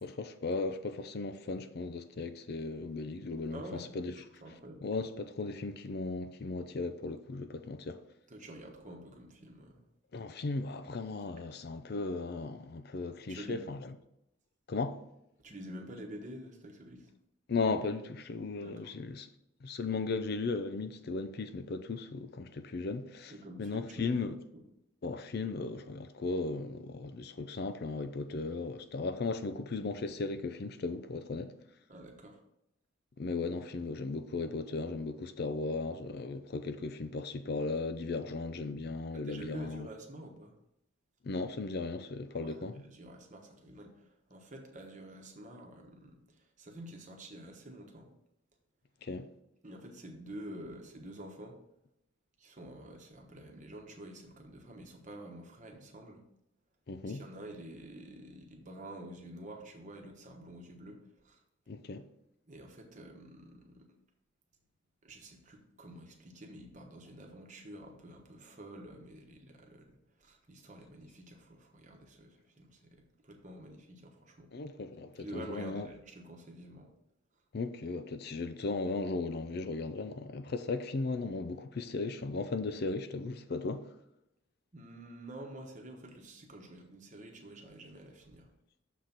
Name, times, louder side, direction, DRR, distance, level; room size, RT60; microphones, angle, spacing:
voice 1, 0.0-4.1 4.8-8.0 10.1-13.9 14.7-15.0 17.5-19.3 19.6-23.3 23.6-24.4 25.0-31.5 33.2-39.9 41.2-42.8 49.0-49.3 56.9-57.2 61.7-62.0 74.5-75.9 77.5-83.8, left 3 dB, 50° left, 0.4 m, -36 dB
voice 2, 3.5-4.9 8.3-9.8 13.3-13.6 15.4-17.1 18.6-18.9 23.3-24.2 31.9-32.4 39.1-40.5 42.4-48.1 49.6-51.6 52.4-56.2 57.0-61.0 61.2-61.4 62.5-63.9 65.0-73.0 73.2-74.5 75.2-76.9 84.7-88.5, right 1 dB, 40° right, 1.1 m, -48 dB
6.5 x 4.0 x 5.9 m
head